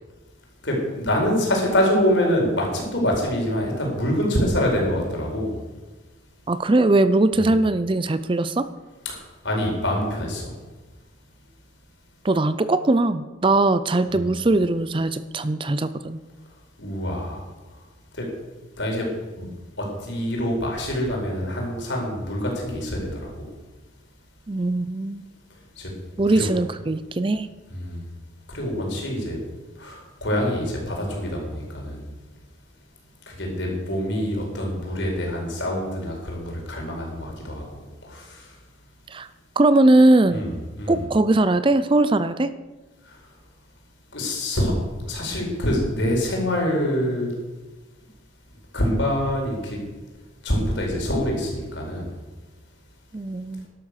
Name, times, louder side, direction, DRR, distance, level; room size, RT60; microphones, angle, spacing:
voice 1, 0.6-5.6 7.3-7.5 9.1-9.2 9.4-10.6 14.1-14.3 16.8-17.4 17.7-17.8 18.1-18.3 18.8-19.1 19.4-19.5 19.8-23.5 25.7-26.5 27.7-28.1 28.5-29.4 29.7-32.0 33.3-38.6 40.3-41.1 43.0-43.2 44.1-44.7 45.1-47.3 48.7-49.8 50.4-52.1, equal, 65° left, 0 dB, 4.7 m, -25 dB
voice 2, 6.5-8.7 12.2-16.2 24.5-25.2 26.2-27.5 39.1-39.3 39.6-40.4 40.9-42.5 53.1-53.7, right 2 dB, 25° right, 13 dB, 0.5 m, -20 dB
13.0 x 11.5 x 6.5 m, 1.2 s
head